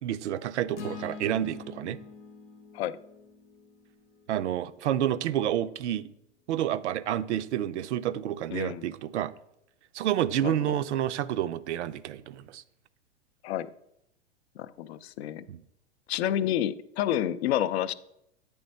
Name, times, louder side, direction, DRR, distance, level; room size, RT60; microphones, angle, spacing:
voice 1, 0.0-2.0 4.3-6.1 6.5-9.3 9.9-12.6 15.5-15.6, right 11 dB, 80° right, 14 dB, 0.5 m, -29 dB
sound 1, 0.8-5.0, left 4 dB, 85° left, 0.9 m, -45 dB
voice 2, 8.5-8.9 10.4-10.8 13.4-13.7 14.6-15.4 16.1-17.9, left 11 dB, 65° left, 15 dB, 0.5 m, -29 dB
8.6 x 3.5 x 5.3 m, 0.79 s
hypercardioid pair, 110°, 34 cm